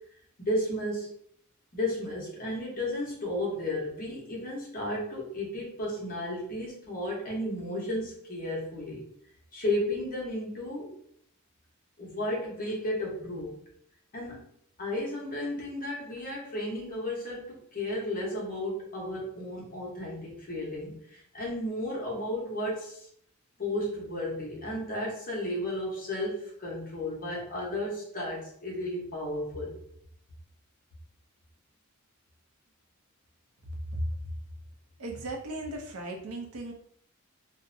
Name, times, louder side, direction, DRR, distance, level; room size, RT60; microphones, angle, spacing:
voice 1, 0.4-1.1 1.7-9.0 9.5-10.9 12.0-13.5 14.1-14.5 14.8-23.1 23.6-29.7, left 1 dB, 40° left, -3 dB, 0.8 m, -33 dB
voice 2, 35.0-36.7, right 2 dB, 70° right, 2 dB, 0.6 m, -37 dB
2.6 x 2.0 x 2.5 m, 0.66 s
head